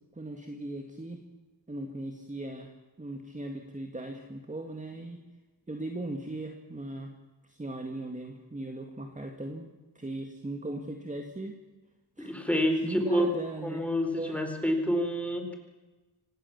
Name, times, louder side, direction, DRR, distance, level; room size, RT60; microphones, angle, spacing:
voice 1, 0.2-1.2 1.7-2.7 3.0-5.2 5.7-7.1 7.4-11.6 12.2-12.3 12.7-13.9 14.1-14.4, right 2 dB, 15° right, 4 dB, 2.1 m, -38 dB
voice 2, 12.2-13.3 13.6-15.6, equal, 5° left, 4 dB, 4.3 m, -28 dB
26.0 x 18.0 x 7.2 m, 1.2 s
wide cardioid pair, 125°, 43 cm